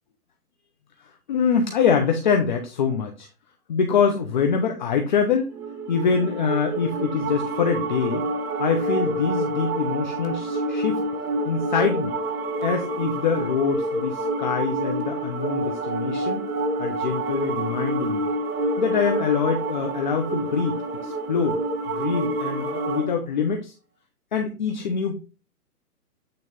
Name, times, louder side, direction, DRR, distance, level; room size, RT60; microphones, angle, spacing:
voice 1, 1.3-3.3 3.7-5.5 5.9-8.3 8.6-11.0 11.4-12.2 12.6-16.5 16.8-18.3 18.8-21.6 21.9-23.7 24.3-25.2, left 6 dB, 30° left, 4 dB, 0.8 m, -24 dB
sound 1, 5.5-23.1, right 2 dB, 65° right, 3.0 m, -28 dB
8.8 x 4.0 x 3.8 m, 0.31 s
hypercardioid pair, 155°, 47 cm